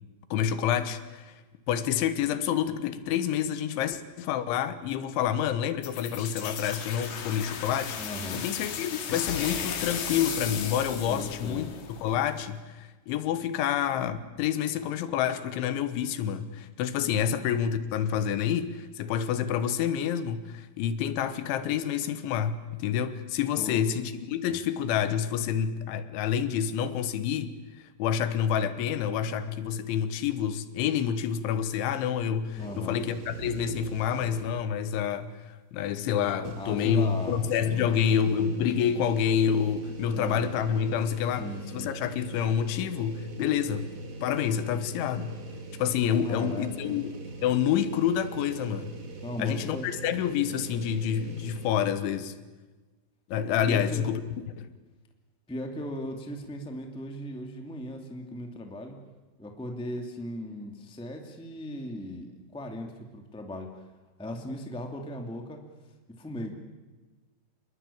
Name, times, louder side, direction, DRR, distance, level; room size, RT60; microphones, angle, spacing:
voice 1, 0.3-1.4 1.7-8.0 8.3-11.7 12.0-27.6 28.0-43.9 44.2-45.4 45.8-47.1 47.4-48.9 49.4-52.3 53.3-54.2 54.6-54.7, left 9 dB, 80° left, 3.5 m, -28 dB
sound 1, 5.8-12.4, left 7 dB, 55° left, 3.2 m, -35 dB
voice 2, 8.0-8.5 11.1-11.7 17.2-17.3 23.5-23.9 24.5-24.6 32.5-33.0 36.6-37.4 40.0-40.5 41.4-41.9 46.2-47.0 49.2-49.9 53.7-54.0 55.5-59.0 59.4-63.8 64.2-65.6 66.2-66.6, left 1 dB, 5° left, 0.9 m, -38 dB
sound 2, 32.6-34.7 35.1-35.2 36.4-51.7, right 3 dB, 40° right, 3.9 m, -42 dB
27.5 x 21.0 x 8.7 m
omnidirectional pair, 5.5 m